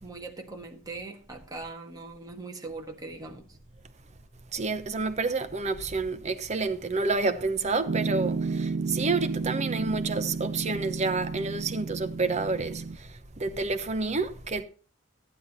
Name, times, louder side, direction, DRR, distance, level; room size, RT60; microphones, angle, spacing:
voice 1, 0.0-3.6, right 3 dB, 20° right, 1.5 m, -41 dB
voice 2, 4.5-13.1 13.4-14.6, right 3 dB, 35° right, 0.9 m, -29 dB
Piano, 7.9-13.0, right 4 dB, 55° right, 0.5 m, -32 dB
12.0 x 9.7 x 4.1 m
head